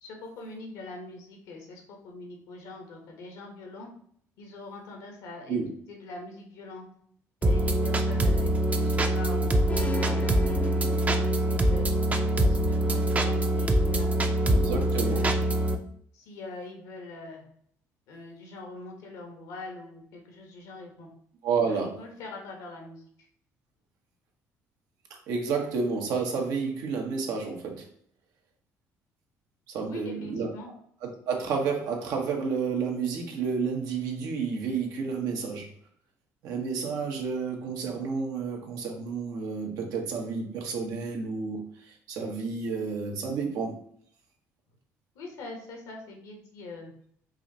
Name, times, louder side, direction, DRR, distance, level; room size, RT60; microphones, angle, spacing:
voice 1, 0.0-3.9 4.4-5.6 5.9-6.9 7.4-11.9 12.4-15.5 16.1-17.4 18.1-21.1 21.7-23.0 29.8-30.7 45.1-46.9, left 2 dB, 85° left, 1 dB, 1.5 m, -43 dB
sound 1, 7.4-15.8, right 1 dB, 25° right, 0.6 m, -24 dB
sound 2, 9.7-11.7, left 4 dB, 25° left, 0.5 m, -38 dB
voice 2, 14.5-15.3 21.4-22.0 25.3-27.8 29.7-30.5 31.0-35.7 36.4-43.8, right 5 dB, 75° right, 1 dB, 1.2 m, -30 dB
4.8 x 2.5 x 4.2 m, 0.63 s
supercardioid pair, 90°, 6 cm